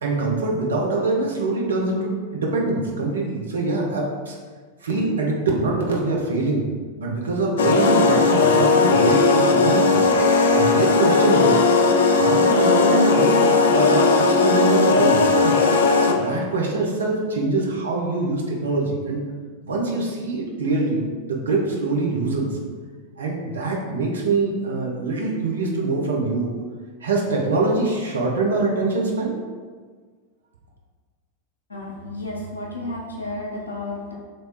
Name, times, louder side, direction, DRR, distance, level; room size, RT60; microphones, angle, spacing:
voice 1, 0.0-4.4 4.8-6.6 7.0-10.0 10.5-11.6 12.1-19.2 19.6-22.5 23.2-26.5 27.0-29.3, right 3 dB, 70° right, -2 dB, 0.8 m, -24 dB
sound 1, 7.6-16.3, left 4 dB, 60° left, 0.4 m, -17 dB
voice 2, 31.7-34.1, left 2 dB, 75° left, -3 dB, 0.8 m, -32 dB
3.1 x 3.1 x 4.4 m, 1.5 s
figure-of-eight pair, 90°, 0 cm